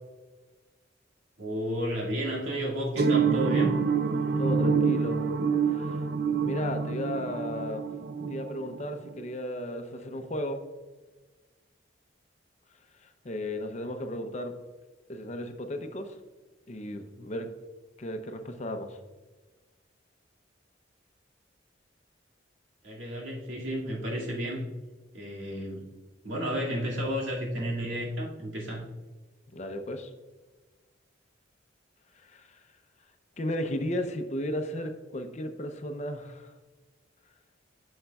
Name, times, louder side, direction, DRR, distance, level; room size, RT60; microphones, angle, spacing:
voice 1, 1.4-3.8 22.8-24.7 25.1-25.8 26.2-28.9, equal, 85° right, -3 dB, 2.2 m, -32 dB
sound 1, 3.0-9.2, right 5 dB, 55° right, 0.4 m, -27 dB
voice 2, 4.4-5.2 5.7-6.0 6.4-7.8 8.3-10.7 13.0-14.5 15.1-16.2 16.7-17.5 18.0-19.0 29.5-30.1 32.2-32.6 33.4-36.5, left 1 dB, 35° left, 6 dB, 0.6 m, -35 dB
9.9 x 6.4 x 2.3 m, 1.3 s
head